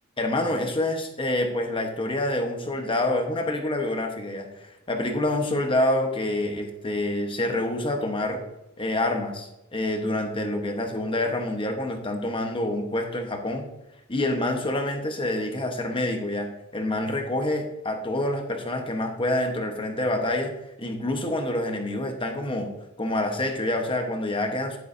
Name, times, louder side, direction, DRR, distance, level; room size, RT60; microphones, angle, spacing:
voice 1, 0.2-8.4 8.8-13.7 14.1-22.7 23.0-24.8, left 1 dB, 25° left, 4 dB, 1.1 m, -27 dB
11.0 x 10.5 x 2.7 m, 0.91 s
head